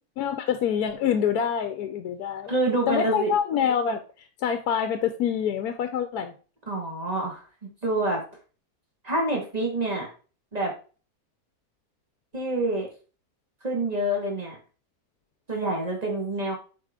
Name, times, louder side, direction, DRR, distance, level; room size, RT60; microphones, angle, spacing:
voice 1, 0.2-2.5 2.9-6.3, left 8 dB, 75° left, 8 dB, 1.1 m, -26 dB
voice 2, 2.5-3.3 6.7-8.2 9.0-10.1 10.5-10.7 12.3-12.9 13.6-14.6 15.5-16.5, right 2 dB, 25° right, 1 dB, 2.0 m, -27 dB
7.7 x 4.8 x 3.6 m, 0.36 s
omnidirectional pair, 1.7 m